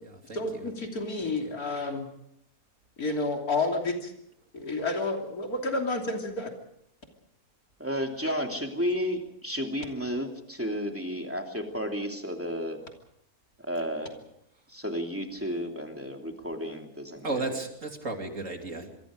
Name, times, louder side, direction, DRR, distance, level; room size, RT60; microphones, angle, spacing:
voice 1, 0.3-2.1 3.0-4.1 4.5-6.5, left 2 dB, 75° left, 2 dB, 3.6 m, -30 dB
voice 2, 1.2-1.5 17.2-18.9, right 3 dB, 55° right, 3 dB, 3.3 m, -34 dB
voice 3, 7.8-12.8 13.6-14.2 14.7-17.5, equal, 10° right, 3 dB, 2.9 m, -32 dB
27.0 x 23.0 x 5.1 m, 0.73 s
omnidirectional pair, 1.6 m